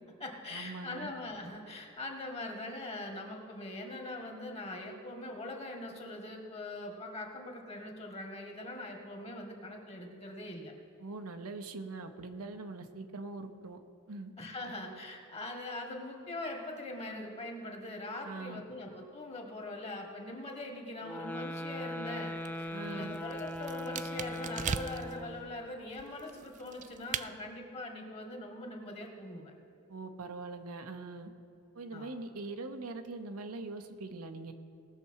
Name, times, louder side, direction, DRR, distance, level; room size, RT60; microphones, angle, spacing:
voice 1, 0.0-10.7 14.4-29.5 31.9-32.1, left 2 dB, 30° left, 2 dB, 1.7 m, -42 dB
voice 2, 0.5-1.1 11.0-13.8 14.1-14.3 18.2-18.6 22.7-23.1 29.9-31.3 31.7-34.5, right 3 dB, 85° right, 6 dB, 0.9 m, -42 dB
sound 1, 21.0-25.6, left 1 dB, 5° left, 0.6 m, -40 dB
sound 2, 22.3-25.2 25.9-27.3, right 7 dB, 35° right, 0.3 m, -39 dB
18.5 x 6.7 x 4.8 m, 2.8 s
head